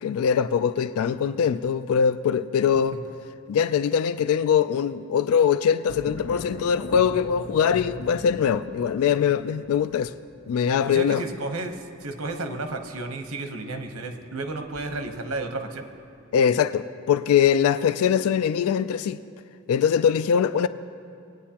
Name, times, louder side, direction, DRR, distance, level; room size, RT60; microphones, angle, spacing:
voice 1, 0.0-3.0 3.5-10.1 10.5-11.2 16.3-19.2 19.7-20.7, left 7 dB, 85° left, 0.3 m, -22 dB
sound 1, 5.9-15.5 15.9-16.5, left 1 dB, 70° left, 1.2 m, -41 dB
voice 2, 10.9-15.9, right 2 dB, 85° right, 0.9 m, -32 dB
19.5 x 9.2 x 2.9 m
head